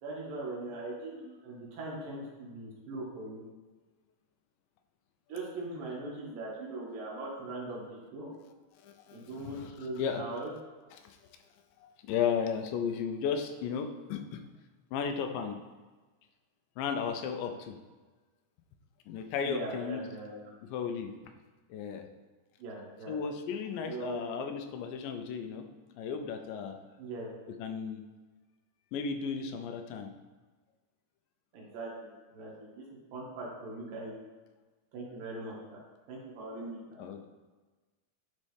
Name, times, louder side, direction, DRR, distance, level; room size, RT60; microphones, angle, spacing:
voice 1, 0.0-3.4 5.3-8.3 9.1-10.5 19.4-20.5 22.6-23.2 23.9-24.4 27.0-27.3 31.5-32.8 33.1-34.1 34.9-35.8 36.1-37.0, right 2 dB, 80° right, -4 dB, 3.4 m, -40 dB
voice 2, 8.8-9.7 10.0-10.2 11.0-11.2 11.8-14.4 14.9-15.6 16.8-17.8 19.1-20.0 20.7-21.1 21.7-22.1 23.1-25.7 26.0-26.8 27.6-28.0 28.9-30.1 37.0-37.2, left 6 dB, 85° left, 6 dB, 2.3 m, -34 dB
11.5 x 4.2 x 3.4 m, 1.3 s
omnidirectional pair, 3.9 m